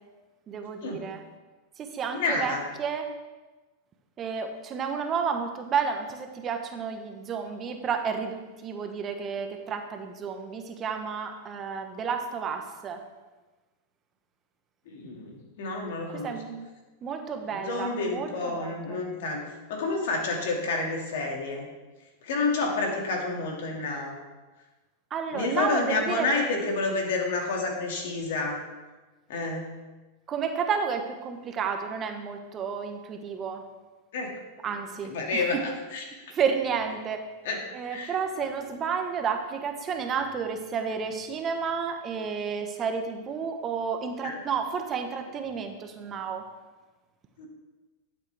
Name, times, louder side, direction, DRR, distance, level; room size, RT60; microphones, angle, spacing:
voice 1, 0.5-1.2 1.8-3.1 4.2-13.0 16.2-16.7 17.0-19.0 25.1-26.5 30.3-33.6 34.6-35.4 36.3-37.3 37.7-46.4, right 6 dB, 30° right, 5 dB, 1.1 m, -31 dB
voice 2, 2.1-2.6 14.9-16.4 17.5-19.4 19.7-21.7 22.2-24.2 25.3-28.6 29.3-29.7 34.1-34.3 35.0-36.1 37.4-37.6 37.9-38.1 44.2-44.4 47.4-47.5, left 3 dB, 70° left, 1 dB, 2.2 m, -29 dB
11.5 x 7.4 x 3.5 m, 1.2 s
hypercardioid pair, 120°, 0 cm